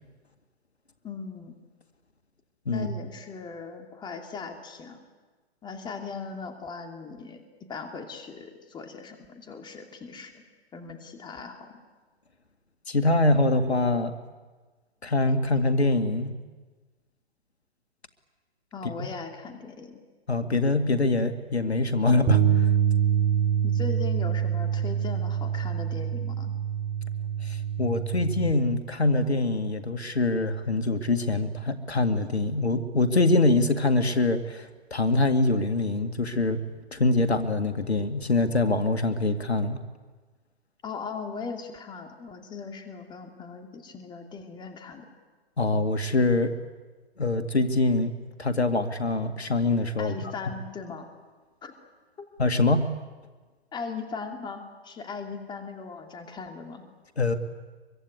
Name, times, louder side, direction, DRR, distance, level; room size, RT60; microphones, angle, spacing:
voice 1, 1.0-1.6 2.7-5.0 5.6-7.4 7.7-10.4 10.7-11.8 18.7-20.0 23.6-26.5 40.8-45.1 50.0-51.1 51.6-51.7 53.7-56.8, left 5 dB, 15° left, 4 dB, 2.6 m, -39 dB
voice 2, 12.9-14.1 15.0-16.4 19.0-19.1 20.3-22.7 27.4-36.6 36.9-39.8 45.6-46.5 47.2-48.1 48.4-50.3 52.4-52.9 57.2-57.3, left 2 dB, 90° left, 8 dB, 2.1 m, -24 dB
Bass guitar, 22.3-28.5, right 9 dB, 20° right, 0.9 m, -25 dB
24.0 x 23.5 x 9.6 m, 1.3 s
figure-of-eight pair, 125°, 32 cm